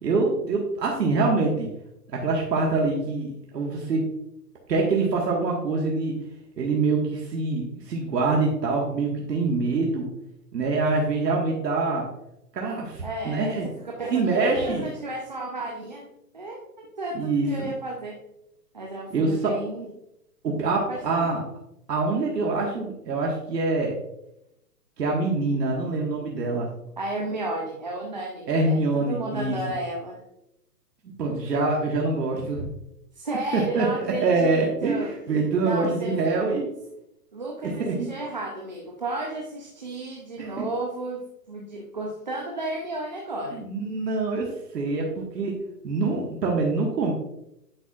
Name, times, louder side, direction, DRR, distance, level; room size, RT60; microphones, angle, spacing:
voice 1, 0.0-1.7 2.2-3.3 3.5-4.0 4.7-6.1 6.6-10.0 10.5-12.0 12.5-13.7 14.1-14.9 17.1-17.7 19.1-19.5 20.4-21.4 21.9-23.9 25.0-26.7 28.5-29.6 31.2-32.6 33.5-33.9 34.2-36.7 37.6-38.1 40.4-40.6 43.5-44.5 44.7-45.5 45.8-47.1, right 3 dB, 80° right, -2 dB, 1.7 m, -25 dB
voice 2, 13.0-16.1 16.3-18.2 18.7-19.9 20.9-21.3 27.0-30.2 33.1-35.1 35.6-36.5 37.3-43.6, right 2 dB, 30° right, -1 dB, 0.5 m, -33 dB
9.7 x 5.7 x 2.4 m, 0.84 s
hypercardioid pair, 165°, 48 cm